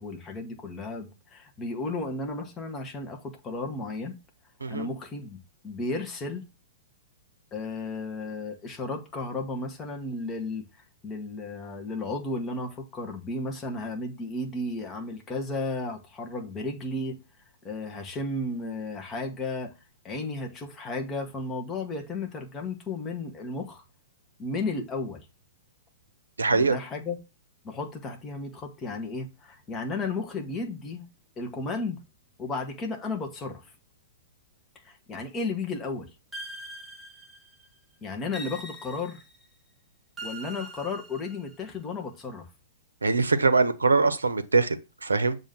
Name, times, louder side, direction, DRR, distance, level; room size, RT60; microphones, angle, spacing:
voice 1, 0.0-4.2 4.7-5.4 5.6-6.4 7.5-17.2 17.6-19.7 20.0-23.8 24.4-25.3 26.5-27.2 27.6-31.1 31.4-32.0 32.4-33.7 34.8-36.1 38.0-39.2 40.2-42.5, left 3 dB, 20° left, 1.3 m, -34 dB
voice 2, 26.4-26.8 43.0-45.4, right 4 dB, 75° right, 0.7 m, -23 dB
sound 1, 36.3-37.7 38.3-39.5 40.2-41.7, right 1 dB, 10° right, 1.3 m, -42 dB
7.0 x 2.7 x 5.7 m
figure-of-eight pair, 110°, 0 cm